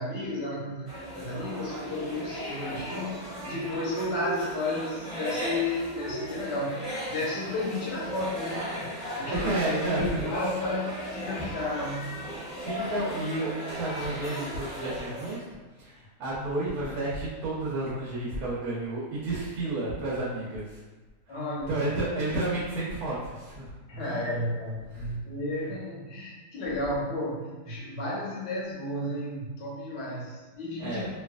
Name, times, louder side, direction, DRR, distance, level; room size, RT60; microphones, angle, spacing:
voice 1, 0.0-12.1 21.3-21.9 23.9-31.2, left 2 dB, 80° left, -6 dB, 1.5 m, -33 dB
sound 1, 0.9-15.4, right 1 dB, 25° left, 1.5 m, -36 dB
voice 2, 9.3-10.1 12.6-20.8 21.3-21.4 21.7-24.3 24.9-25.1 30.8-31.1, right 2 dB, 70° right, -7 dB, 1.2 m, -31 dB
3.2 x 2.9 x 2.3 m, 1.2 s
omnidirectional pair, 1.8 m